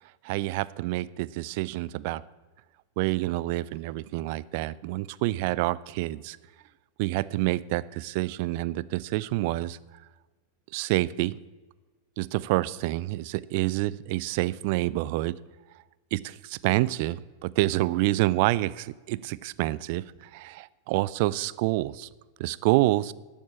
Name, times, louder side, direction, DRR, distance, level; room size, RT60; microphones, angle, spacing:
voice 1, 0.2-2.2 3.0-6.4 7.0-9.8 10.7-11.4 12.2-15.4 16.1-20.1 20.3-22.1 22.4-23.1, right 18 dB, 50° right, 20 dB, 0.4 m, -27 dB
12.0 x 7.2 x 8.7 m, 1.3 s
figure-of-eight pair, 90°, 0 cm